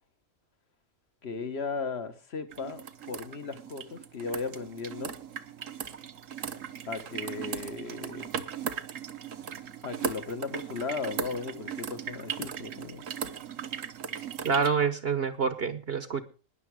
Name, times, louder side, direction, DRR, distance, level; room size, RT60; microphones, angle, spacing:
voice 1, 1.2-5.1 6.9-8.3 9.8-13.0, left 4 dB, 55° left, 1.7 m, -36 dB
sound 1, 2.5-14.7, right 8 dB, 75° right, 1.5 m, -38 dB
voice 2, 14.4-16.2, right 5 dB, 50° right, 1.2 m, -27 dB
20.5 x 7.1 x 4.9 m
omnidirectional pair, 1.3 m